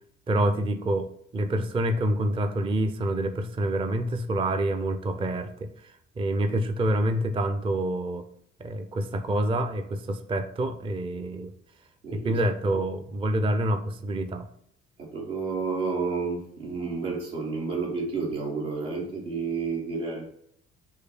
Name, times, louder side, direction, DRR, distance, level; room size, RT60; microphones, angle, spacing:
voice 1, 0.3-1.1 1.3-8.3 8.6-11.5 12.1-14.5, right 1 dB, 15° right, 9 dB, 0.4 m, -27 dB
voice 2, 12.0-12.4 15.0-20.2, right 4 dB, 80° right, -4 dB, 1.8 m, -30 dB
5.4 x 3.2 x 5.7 m, 0.70 s
figure-of-eight pair, 50°, 37 cm